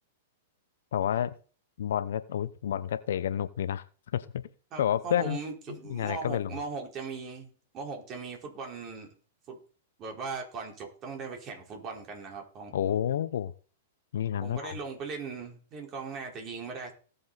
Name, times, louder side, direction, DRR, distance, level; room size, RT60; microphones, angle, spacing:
voice 1, 0.9-1.3 1.8-3.8 4.1-4.4 4.8-5.4 5.7-6.5 12.7-13.5 14.1-14.8, left 10 dB, 65° left, 0.9 m, -29 dB
voice 2, 4.7-9.1 9.5-9.6 10.0-12.7 14.4-16.9, right 4 dB, 35° right, 4.5 m, -39 dB
18.5 x 7.2 x 4.2 m
hypercardioid pair, 105°, 0 cm